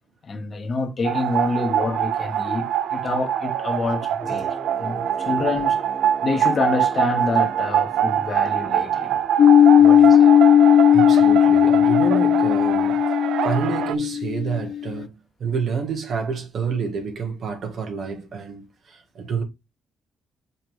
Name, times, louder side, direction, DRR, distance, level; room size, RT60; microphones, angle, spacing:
voice 1, 0.2-5.8 6.2-9.1 9.8-10.3, left 3 dB, 40° left, 1.5 m, -27 dB
sound 1, 1.0-13.9, right 10 dB, 80° right, 0.4 m, -24 dB
sound 2, 4.2-9.9, right 2 dB, 30° right, 1.0 m, -40 dB
sound 3, 9.4-14.9, left 10 dB, 60° left, 0.4 m, -16 dB
voice 2, 10.9-13.0 13.4-15.1 15.4-19.4, right 5 dB, 60° right, 2.0 m, -28 dB
6.7 x 3.6 x 4.9 m
cardioid pair, 90°, 0 cm